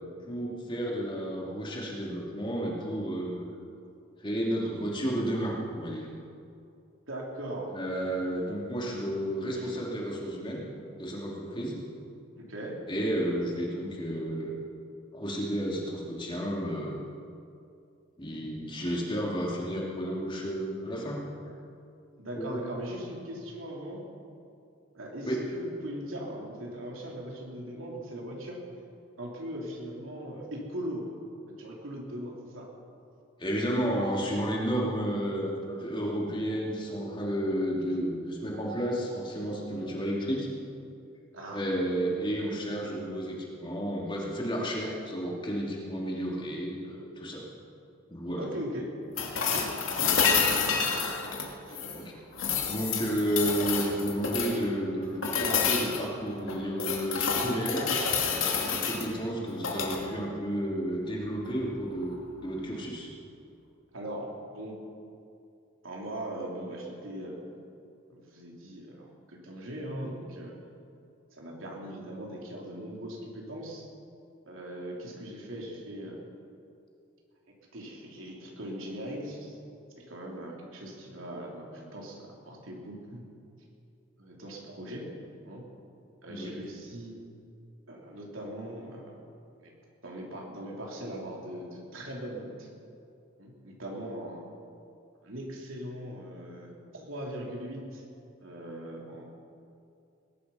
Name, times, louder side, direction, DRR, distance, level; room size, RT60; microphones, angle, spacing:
voice 1, 0.3-3.4 4.2-6.1 7.7-10.6 11.0-11.8 12.9-14.5 15.1-17.0 18.2-21.2 22.4-22.6 25.3-25.5 33.4-40.5 41.5-47.4 48.1-48.5 51.9-52.1 52.4-57.9 58.3-63.1 86.3-86.5, equal, 25° left, -3 dB, 2.7 m, -32 dB
voice 2, 7.1-7.7 12.4-12.7 22.2-24.0 24.9-28.6 29.2-31.2 31.5-32.7 41.3-41.7 48.4-48.9 49.5-49.8 50.1-50.5 51.7-52.0 63.9-64.8 65.8-67.4 68.1-70.5 71.3-73.9 74.4-76.2 77.7-79.6 80.0-83.2 84.2-85.1 85.4-85.6 86.2-87.1 87.9-89.2 89.6-89.7 90.0-92.7 93.4-94.4 95.2-98.0 98.4-99.2, right 1 dB, 85° right, -2 dB, 3.3 m, -40 dB
sound 1, 49.2-52.0 52.4-54.6 55.2-56.0 56.5-59.0 59.5-60.0 62.0-62.1, left 6 dB, 85° left, 2.2 m, -28 dB
20.0 x 11.0 x 5.6 m, 2.5 s
head